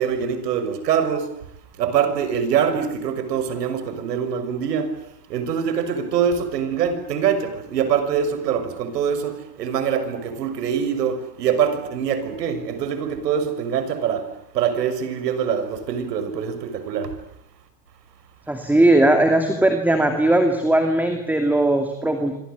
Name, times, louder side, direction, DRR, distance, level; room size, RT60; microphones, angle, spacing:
voice 1, 0.0-1.3 1.8-5.0 5.3-17.2, right 7 dB, 70° right, 6.5 m, -24 dB
voice 2, 18.5-22.3, right 1 dB, 5° right, 2.5 m, -18 dB
26.5 x 26.5 x 8.2 m
hypercardioid pair, 140°, 50 cm